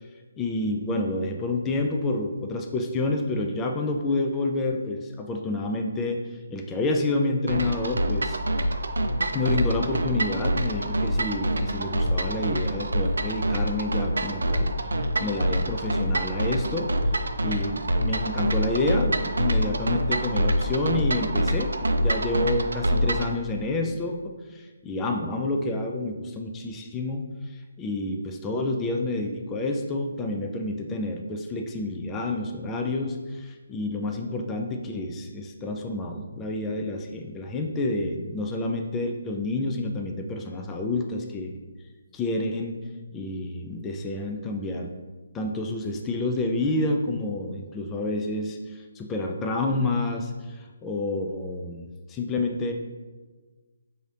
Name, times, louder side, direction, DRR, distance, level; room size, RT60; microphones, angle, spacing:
voice 1, 0.4-6.2 6.5-8.4 9.3-14.7 15.0-16.9 17.4-21.7 22.0-41.5 42.1-42.8 43.1-44.9 45.3-52.7, left 2 dB, 15° left, 2 dB, 0.3 m, -29 dB
sound 1, 7.5-23.3, right 1 dB, 85° right, 0.4 m, -26 dB
5.1 x 2.7 x 3.2 m, 1.3 s
hypercardioid pair, 160°, 0 cm